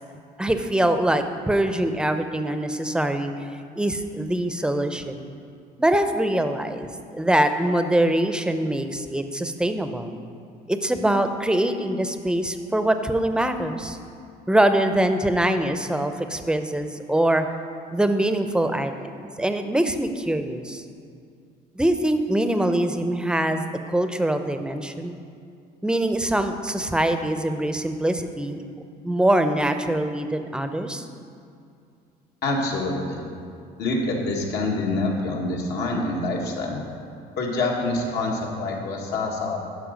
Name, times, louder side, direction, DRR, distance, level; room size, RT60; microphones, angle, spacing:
voice 1, 0.4-3.4 3.8-5.3 5.8-10.1 10.7-14.0 14.5-17.5 17.9-18.9 19.2-20.8 21.8-25.2 25.8-28.6 29.0-31.1, right 1 dB, 5° right, 8 dB, 0.5 m, -23 dB
voice 2, 32.4-33.2 33.8-36.8 37.4-39.6, left 2 dB, 80° left, -1 dB, 1.7 m, -26 dB
12.0 x 5.0 x 5.1 m, 2.4 s
cardioid pair, 110°, 17 cm